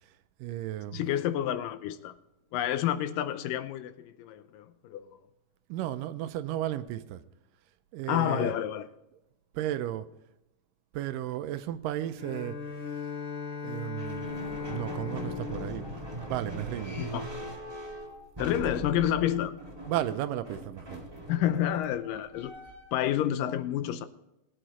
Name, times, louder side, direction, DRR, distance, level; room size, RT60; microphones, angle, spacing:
voice 1, 0.4-1.1 5.7-7.2 7.9-8.5 9.5-10.1 10.9-12.6 13.6-14.3 14.7-15.9 16.3-17.3 19.9-21.0, right 13 dB, 85° right, 2.2 m, -34 dB
voice 2, 0.9-2.1 2.5-5.1 8.1-8.9 17.0-17.2 18.4-19.5 21.3-22.5 22.9-24.1, left 11 dB, 80° left, 2.3 m, -29 dB
Bowed string instrument, 12.2-17.2, left 5 dB, 45° left, 1.2 m, -39 dB
sound 1, 14.0-23.1, right 1 dB, 10° right, 1.2 m, -40 dB
20.0 x 8.9 x 3.0 m
omnidirectional pair, 3.9 m